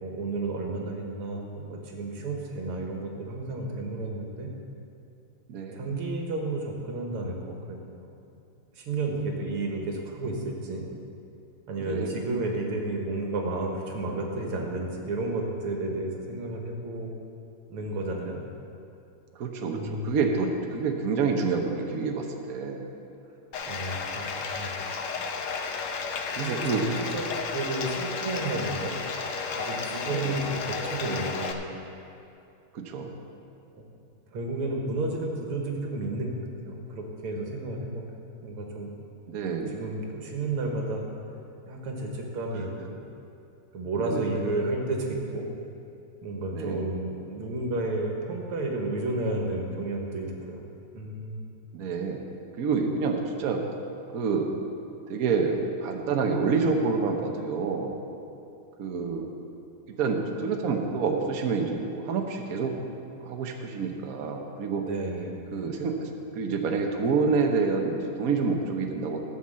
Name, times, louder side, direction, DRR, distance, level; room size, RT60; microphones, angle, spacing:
voice 1, 0.0-4.5 5.7-7.9 8.7-10.9 11.7-17.1 17.7-18.4 19.7-20.2 23.7-24.7 26.4-27.3 27.5-28.9 29.6-31.6 33.8-33.9 34.3-36.4 36.7-38.0 38.4-38.9 39.7-41.0 41.7-43.0 43.7-45.5 46.2-50.6 50.9-51.5 64.8-65.4, right 2 dB, 85° right, 1 dB, 2.4 m, -32 dB
voice 2, 5.5-5.8 11.8-12.1 19.4-22.9 26.4-26.8 30.1-30.4 32.7-33.1 39.3-39.8 44.0-44.4 46.5-46.9 51.7-52.2 52.6-53.6 54.1-54.5 55.1-57.9 58.8-59.4 60.0-62.7 63.2-64.8 65.5-69.2, right 4 dB, 50° right, 3 dB, 1.2 m, -28 dB
Bathtub (filling or washing), 23.5-31.5, left 5 dB, 70° left, 0.7 m, -33 dB
14.0 x 6.0 x 7.6 m, 2.6 s
omnidirectional pair, 2.4 m